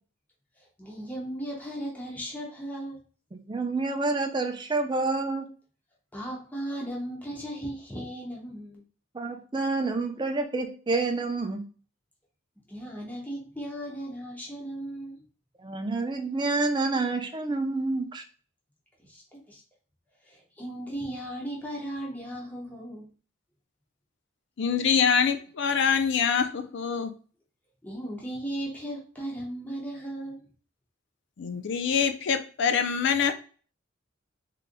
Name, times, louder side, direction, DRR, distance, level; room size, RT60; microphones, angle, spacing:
voice 1, 0.6-3.0 6.1-8.8 12.7-15.2 19.0-19.6 20.2-23.1 27.8-30.5, right 1 dB, 10° left, -3 dB, 1.0 m, -36 dB
voice 2, 3.3-5.5 9.1-11.6 15.6-18.2, right 3 dB, 25° right, 4 dB, 0.5 m, -28 dB
voice 3, 24.6-27.1 31.4-33.3, left 6 dB, 65° left, 8 dB, 0.5 m, -25 dB
3.8 x 3.4 x 2.2 m, 0.40 s
head